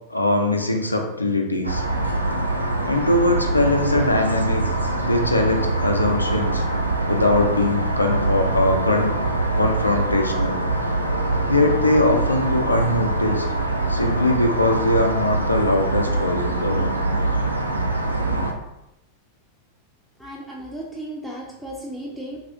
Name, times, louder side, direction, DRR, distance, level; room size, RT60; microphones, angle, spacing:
voice 1, 0.1-1.9 2.8-4.6 5.0-6.6 7.1-9.1 9.5-10.6 11.5-13.5 13.9-16.9, left 1 dB, 85° left, 3 dB, 0.4 m, -21 dB
sound 1, 1.6-18.5, right 2 dB, 85° right, 0.3 m, -23 dB
voice 2, 20.2-22.4, right 1 dB, ahead, -3 dB, 0.4 m, -35 dB
3.2 x 2.3 x 2.6 m, 0.90 s
figure-of-eight pair, 90°, 0 cm